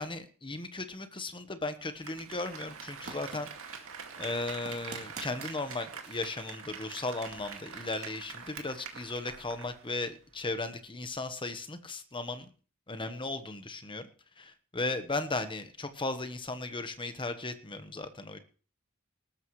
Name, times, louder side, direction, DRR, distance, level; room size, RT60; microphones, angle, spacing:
voice 1, 0.0-3.7 4.2-12.5 12.9-14.1 14.4-18.4, left 2 dB, 20° left, 9 dB, 1.3 m, -36 dB
Applause, 1.8-10.0 10.3-10.4, right 6 dB, 65° right, 2.2 m, -45 dB
sound 1, 3.0-9.2, right 4 dB, 45° right, 3.9 m, -51 dB
19.0 x 13.5 x 3.2 m, 0.38 s
head